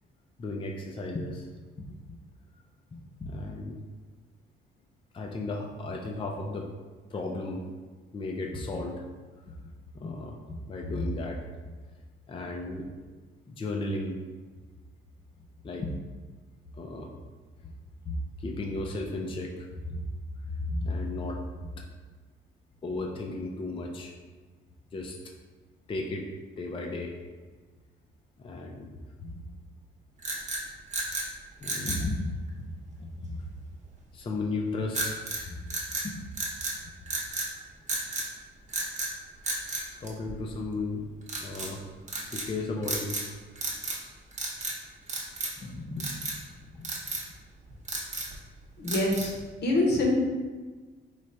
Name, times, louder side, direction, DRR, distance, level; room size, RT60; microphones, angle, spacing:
voice 1, 0.4-1.5 1.8-1.9 2.9-3.8 5.1-6.7 7.1-7.7 8.1-9.0 9.5-9.6 9.9-11.4 11.7-11.8 12.3-12.8 13.5-14.2 15.6-15.9 16.8-17.1 17.6-17.7 18.1-20.1 20.4-21.5 22.8-24.1 24.9-25.2 25.9-26.3 26.6-27.2 28.4-28.9 29.2-29.4 31.6-32.7 33.0-33.4 34.1-35.2 35.5-35.6 36.0-36.3 36.8-36.9 40.0-41.0 41.4-41.8 42.2-43.2 45.6-46.3 46.7-46.9, left 2 dB, 25° left, 1 dB, 0.4 m, -34 dB
sound 1, 30.2-31.3 31.6-32.1 34.9-35.4 35.7-36.8 37.1-37.5 37.9-38.3 38.7-39.1 39.4-40.6 41.3-41.7 42.1-42.5 42.8-43.3 43.5-44.0 44.3-44.8 45.1-45.6 46.0-46.4 46.8-47.3 47.7-48.4 48.9-49.4, right 2 dB, 35° right, 0.8 m, -33 dB
voice 2, 48.8-49.3 49.6-50.2, left 1 dB, 60° left, 0 dB, 0.9 m, -25 dB
3.2 x 2.4 x 4.1 m, 1.4 s
cardioid pair, 90°, 20 cm